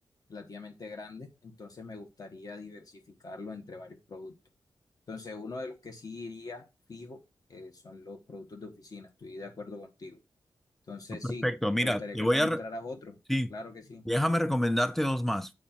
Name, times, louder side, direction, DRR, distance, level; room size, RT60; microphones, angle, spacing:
voice 1, 0.3-4.3 5.1-6.6 6.9-7.2 7.5-10.2 10.9-11.4 11.8-13.2 13.5-14.0, left 3 dB, 45° left, 1.3 m, -42 dB
voice 2, 11.2-12.6 13.3-13.5 14.1-15.5, equal, 5° left, 0.4 m, -27 dB
8.0 x 4.3 x 4.3 m
wide cardioid pair, 175°, 9 cm